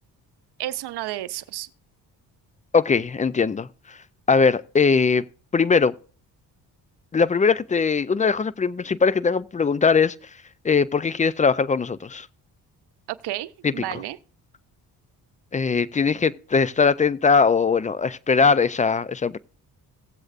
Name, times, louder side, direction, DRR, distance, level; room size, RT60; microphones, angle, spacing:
voice 1, 0.6-1.7 13.1-14.2, right 14 dB, 65° right, 0.7 m, -31 dB
voice 2, 2.7-4.0 4.3-5.2 5.5-5.9 7.1-10.2 10.6-12.3 13.6-13.7 15.5-19.4, left 5 dB, 20° left, 0.4 m, -20 dB
17.5 x 7.7 x 2.5 m
supercardioid pair, 60°, 43 cm